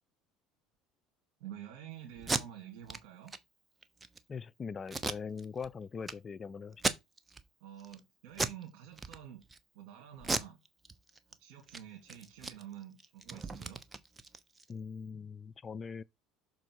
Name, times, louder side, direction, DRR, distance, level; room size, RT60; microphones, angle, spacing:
voice 1, 1.4-3.3 7.6-9.5 9.7-10.6 11.4-13.8, right 10 dB, 65° right, 2.5 m, -49 dB
Packing tape duct tape, 2.2-2.4 2.9-3.0 3.3-3.4 3.8-4.2 4.9-5.7 6.0-6.1 6.7-7.4 7.8-8.0 8.3-8.6 9.0-9.6 10.2-11.3 11.6-11.8 12.1-14.7, right 3 dB, 20° right, 0.9 m, -36 dB
voice 2, 4.3-6.8 14.7-16.0, left 5 dB, 35° left, 0.4 m, -41 dB
6.3 x 4.2 x 4.6 m
hypercardioid pair, 80°, 0 cm